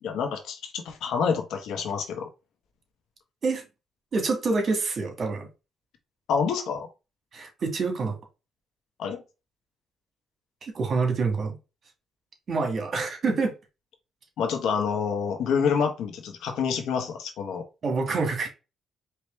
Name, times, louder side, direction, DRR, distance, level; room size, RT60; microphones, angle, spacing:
voice 1, 0.0-2.3 6.3-6.9 9.0-9.2 14.4-17.6, left 6 dB, 80° left, 1.1 m, -27 dB
voice 2, 4.1-5.5 7.3-8.2 10.6-11.6 12.5-13.5 17.8-18.5, right 4 dB, 50° right, 1.7 m, -26 dB
4.7 x 2.9 x 3.2 m
cardioid pair, 90°, 0 cm